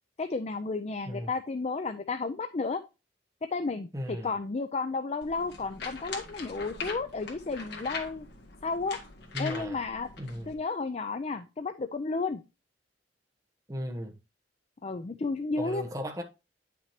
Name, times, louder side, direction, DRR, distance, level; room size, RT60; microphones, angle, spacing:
voice 1, 0.2-2.8 3.5-8.3 8.6-9.0 9.4-10.1 10.5-12.4 14.8-15.8, left 3 dB, 35° left, 0.5 m, -32 dB
voice 2, 3.9-4.3 6.7-6.9 9.3-9.8 10.2-10.6 13.7-14.1 15.6-16.2, equal, 20° right, 1.1 m, -36 dB
sound 1, 5.2-10.5, left 4 dB, 60° left, 1.9 m, -42 dB
9.5 x 5.9 x 2.8 m
head